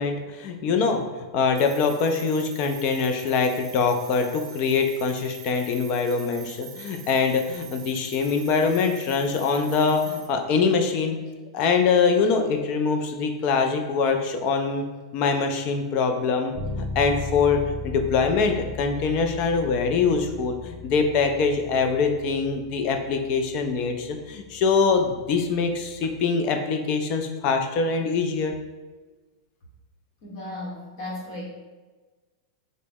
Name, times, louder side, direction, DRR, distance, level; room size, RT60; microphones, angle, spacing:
voice 1, 0.0-11.2 11.5-14.9 15.1-28.5, left 5 dB, 40° left, 5 dB, 0.4 m, -23 dB
sound 1, 1.6-10.4, right 8 dB, 15° right, 0.8 m, -44 dB
Bass guitar, 16.5-26.3, left 3 dB, 35° right, 0.4 m, -38 dB
voice 2, 30.2-31.4, left 1 dB, 55° left, -4 dB, 1.2 m, -35 dB
3.8 x 2.1 x 3.5 m, 1.3 s
supercardioid pair, 150°, 3 cm